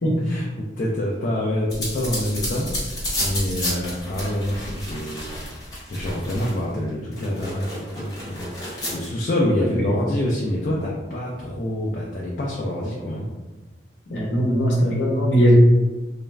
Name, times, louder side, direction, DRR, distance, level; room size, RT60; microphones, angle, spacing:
voice 1, 0.2-5.3 5.6-8.5 8.9-13.3, left 1 dB, 50° left, -4 dB, 0.4 m, -26 dB
sound 1, 1.7-6.7 7.1-9.1, left 1 dB, 20° left, 0.9 m, -31 dB
voice 2, 9.6-10.0 14.1-15.5, equal, 70° left, -3 dB, 0.7 m, -20 dB
2.4 x 2.1 x 3.1 m, 1.2 s
head